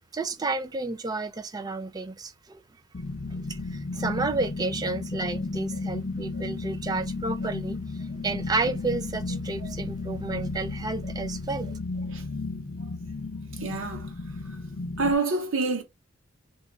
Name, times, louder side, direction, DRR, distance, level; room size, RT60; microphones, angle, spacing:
voice 1, 0.1-2.6 3.3-7.8 8.2-11.8, right 3 dB, 20° right, 0.3 m, -31 dB
sound 1, 2.9-15.1, left 3 dB, 45° left, 0.4 m, -34 dB
voice 2, 13.5-14.1 14.5-14.6 15.0-15.8, right 3 dB, 80° right, 0.7 m, -28 dB
3.0 x 2.3 x 3.9 m
head